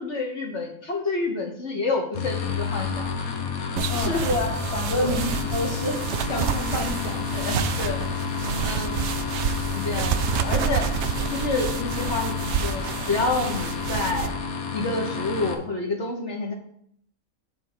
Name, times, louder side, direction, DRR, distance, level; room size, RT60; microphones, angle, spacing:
voice 1, 0.0-3.1 3.9-4.2 4.9-5.1 7.3-9.1 9.7-10.9 11.3-12.8 13.1-14.3 14.7-16.5, left 3 dB, 55° left, 0 dB, 1.5 m, -29 dB
sound 1, 2.1-15.5, left 6 dB, 80° left, 1.4 m, -30 dB
sound 2, 3.8-14.3, right 8 dB, 65° right, 0.8 m, -29 dB
voice 2, 3.9-7.3, left 2 dB, 25° left, 1 dB, 1.4 m, -29 dB
6.8 x 4.4 x 6.7 m, 0.65 s
omnidirectional pair, 1.5 m